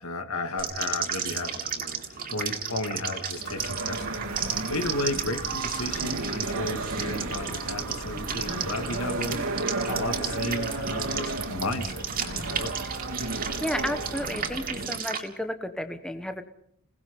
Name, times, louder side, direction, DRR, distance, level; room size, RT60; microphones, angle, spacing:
voice 1, 0.0-12.8, left 2 dB, 70° left, 7 dB, 2.4 m, -33 dB
sound 1, 0.6-15.2, right 7 dB, 40° right, 3.0 m, -34 dB
sound 2, 3.4-15.0, right 2 dB, 70° right, 2.8 m, -33 dB
voice 2, 13.6-16.4, left 1 dB, 5° left, 8 dB, 1.1 m, -32 dB
28.0 x 19.0 x 5.4 m, 0.68 s
head